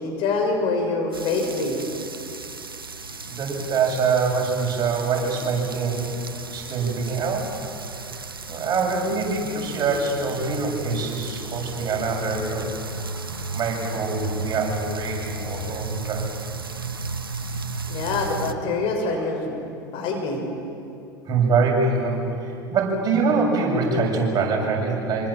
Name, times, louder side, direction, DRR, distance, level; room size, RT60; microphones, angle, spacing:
voice 1, 0.0-1.8 17.9-19.5 19.8-20.4, left 3 dB, 50° left, 3 dB, 6.3 m, -25 dB
sound 1, 1.1-18.5, right 3 dB, 90° right, 1.0 m, -34 dB
voice 2, 3.2-6.1 6.5-7.5 8.5-12.7 13.5-16.3 21.3-25.3, right 4 dB, 35° right, 0 dB, 7.7 m, -24 dB
26.0 x 26.0 x 7.6 m, 2.7 s
figure-of-eight pair, 80°, 12 cm